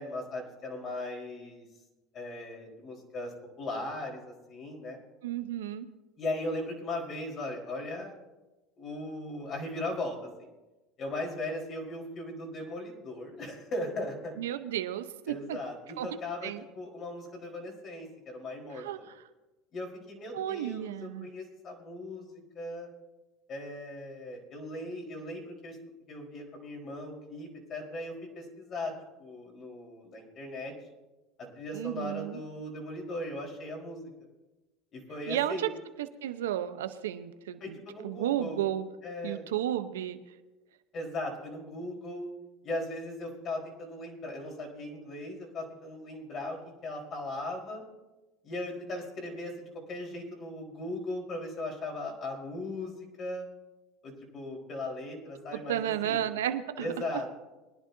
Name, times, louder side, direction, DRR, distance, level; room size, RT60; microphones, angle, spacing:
voice 1, 0.0-1.6 2.1-3.3 3.6-5.0 6.2-8.1 8.8-10.3 11.0-14.3 15.3-19.1 19.7-22.9 23.5-25.8 26.1-28.9 29.2-30.7 31.5-34.1 34.9-35.7 37.6-38.6 39.0-39.4 40.9-42.3 42.6-47.8 48.4-53.5 54.0-56.3 56.8-57.3, left 1 dB, 45° left, 0 dB, 4.2 m, -38 dB
voice 2, 5.2-5.9 14.4-15.6 16.0-16.1 16.4-16.6 18.7-19.0 20.3-21.3 31.7-32.4 35.3-35.7 36.0-37.8 38.0-38.8 39.2-40.2 55.7-56.9, right 11 dB, 90° right, 10 dB, 0.8 m, -32 dB
22.0 x 11.0 x 2.7 m, 1.1 s
supercardioid pair, 95°, 0 cm